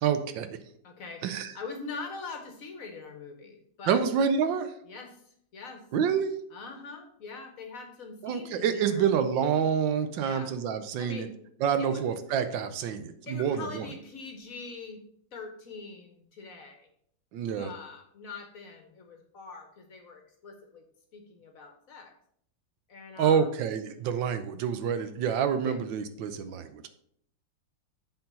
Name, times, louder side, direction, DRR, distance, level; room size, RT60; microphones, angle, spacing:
voice 1, 0.0-0.6 1.2-1.5 3.9-4.7 5.9-6.4 8.2-11.3 11.6-13.9 17.3-17.7 23.2-26.9, right 7 dB, 80° right, 10 dB, 1.4 m, -27 dB
voice 2, 0.8-1.2 1.5-4.0 4.8-5.9 6.5-9.0 10.2-10.5 11.0-11.3 11.8-12.0 13.3-15.0 15.3-16.9 17.6-20.8 21.1-22.1 22.9-23.5 25.6-25.8, left 4 dB, 55° left, 5 dB, 1.2 m, -43 dB
7.7 x 4.6 x 5.4 m, 0.67 s
omnidirectional pair, 2.1 m